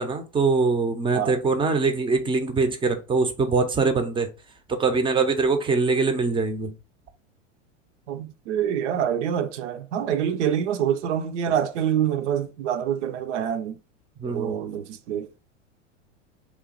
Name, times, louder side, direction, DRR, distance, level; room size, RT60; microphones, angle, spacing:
voice 1, 0.0-4.3 4.7-6.7 14.2-14.6, right 4 dB, 15° right, 0.5 m, -23 dB
voice 2, 8.1-13.8 14.3-15.3, right 9 dB, 70° right, 0.6 m, -26 dB
3.1 x 2.3 x 3.7 m
hypercardioid pair, 95°, 38 cm